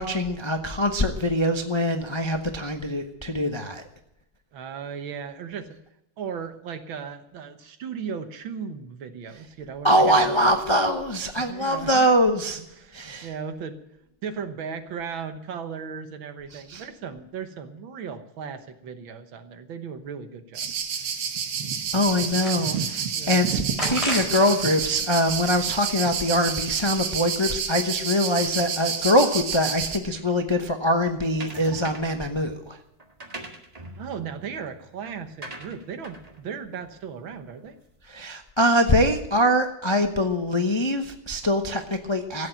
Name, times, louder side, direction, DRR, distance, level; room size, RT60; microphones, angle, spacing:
voice 1, 0.0-3.8 9.8-12.6 12.9-13.3 16.5-16.8 21.9-23.6 23.9-32.8 38.1-42.5, equal, 45° left, 5 dB, 0.3 m, -23 dB
voice 2, 4.5-5.8 6.2-10.4 11.4-12.0 12.7-13.8 14.2-21.1 23.1-23.4 34.0-37.8, right 6 dB, 70° right, 8 dB, 1.9 m, -36 dB
sound 1, 20.6-30.0, right 7 dB, 85° right, 2.1 m, -29 dB
sound 2, 21.1-21.2 21.7-23.1 23.8-24.7 25.0-26.2, equal, 15° left, 4.1 m, -33 dB
sound 3, 31.4-32.2 33.0-37.7, right 2 dB, 20° right, 1.5 m, -42 dB
15.0 x 8.2 x 9.0 m, 0.83 s
omnidirectional pair, 2.3 m